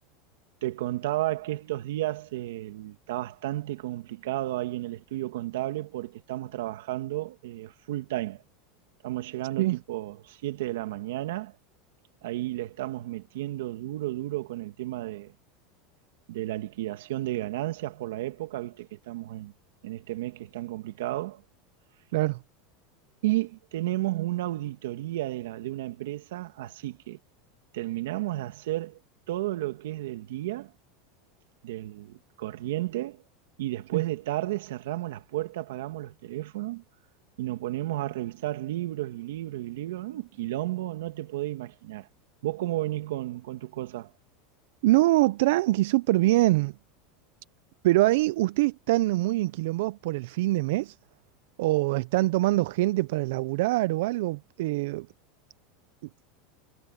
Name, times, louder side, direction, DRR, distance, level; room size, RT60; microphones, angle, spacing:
voice 1, 0.6-8.4 9.0-11.5 12.2-15.3 16.3-19.5 19.8-21.4 23.2-27.2 27.7-29.0 29.3-30.7 31.6-33.2 33.6-36.8 37.4-42.1 42.4-44.1, right 16 dB, 85° right, 2.4 m, -32 dB
voice 2, 44.8-46.7 47.8-51.0 51.6-55.1, right 18 dB, 70° right, 0.4 m, -24 dB
supercardioid pair, 160°, 0 cm